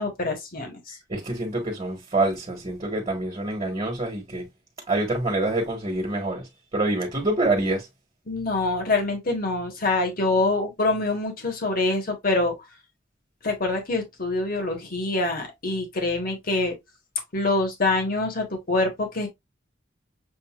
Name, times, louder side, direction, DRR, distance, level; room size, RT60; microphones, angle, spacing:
voice 1, 0.0-1.0 8.3-12.5 13.4-16.7 17.3-19.3, left 2 dB, 50° left, 1.4 m, -25 dB
voice 2, 1.1-4.4 4.9-6.4 6.7-7.8, right 2 dB, 30° right, 1.5 m, -26 dB
6.9 x 2.6 x 2.4 m
head